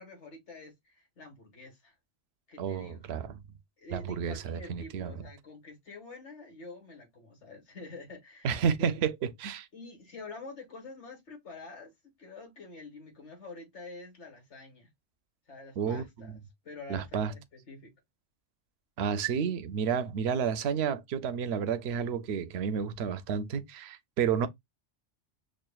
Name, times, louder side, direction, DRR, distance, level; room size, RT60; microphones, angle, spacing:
voice 1, 0.0-1.9 2.5-3.0 3.8-8.9 9.7-14.9 15.5-16.4 16.6-17.9 19.4-19.5, left 3 dB, 70° left, 1.9 m, -47 dB
voice 2, 2.6-3.3 3.9-5.1 8.4-9.7 15.8-16.3 16.9-17.3 19.0-24.5, right 7 dB, 65° right, 0.8 m, -31 dB
6.2 x 2.4 x 2.2 m
omnidirectional pair, 1.2 m